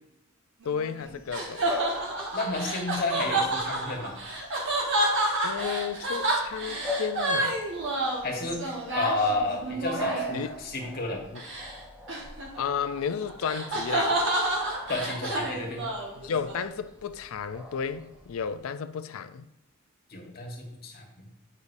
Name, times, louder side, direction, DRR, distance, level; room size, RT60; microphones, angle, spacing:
voice 1, 0.6-1.6 5.4-7.6 10.3-10.5 11.3-11.4 12.6-14.2 16.2-19.5, left 6 dB, 75° left, 0.4 m, -32 dB
sound 1, 0.6-10.4 11.4-11.7 12.1-16.7, right 1 dB, 60° right, 1.5 m, -29 dB
Bark / Bird vocalization bird call bird song, 1.0-18.6, left 1 dB, 5° right, 0.6 m, -42 dB
voice 2, 2.3-4.1 8.2-11.2 14.9-15.8 20.1-21.1, left 2 dB, 45° left, 1.4 m, -31 dB
8.2 x 5.4 x 2.6 m
head